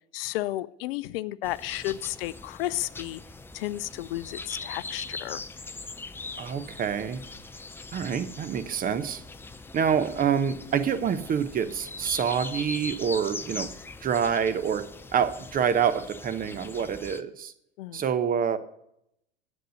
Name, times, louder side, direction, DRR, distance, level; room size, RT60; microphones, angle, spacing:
voice 1, 0.1-3.2 3.5-5.4 17.8-18.0, left 16 dB, 60° left, 17 dB, 0.5 m, -32 dB
sound 1, 1.4-17.2, left 3 dB, 5° left, 0.5 m, -41 dB
voice 2, 6.4-7.2 7.9-9.2 9.7-13.7 14.0-14.9 15.1-17.5 17.9-18.6, right 7 dB, 25° right, 13 dB, 0.8 m, -27 dB
10.5 x 8.0 x 6.3 m, 0.77 s
hypercardioid pair, 90°, 34 cm